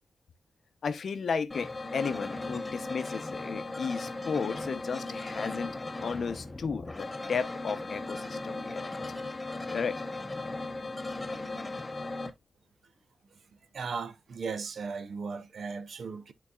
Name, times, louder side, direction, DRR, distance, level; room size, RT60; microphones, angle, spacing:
voice 1, 0.8-5.7 6.0-9.2 9.7-10.0, left 5 dB, 50° left, 0.7 m, -34 dB
sound 1, 1.5-12.3, left 2 dB, 15° left, 0.9 m, -37 dB
voice 2, 13.7-16.3, right 5 dB, 55° right, 0.8 m, -37 dB
11.0 x 4.0 x 2.3 m
wide cardioid pair, 180°, 0 cm